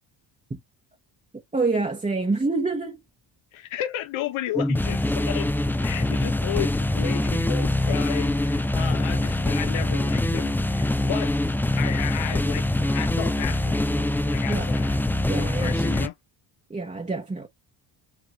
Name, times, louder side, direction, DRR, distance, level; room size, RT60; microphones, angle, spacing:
voice 1, 1.5-3.0 14.5-14.7 15.2-15.8 16.7-17.5, right 3 dB, 15° right, 0.9 m, -26 dB
voice 2, 3.5-5.5 5.8-11.3 11.8-15.0 15.3-16.1, left 11 dB, 70° left, 0.9 m, -33 dB
sound 1, 4.5-16.1, left 1 dB, 5° left, 0.3 m, -24 dB
5.0 x 2.5 x 3.1 m
cardioid pair, 75°, 50 cm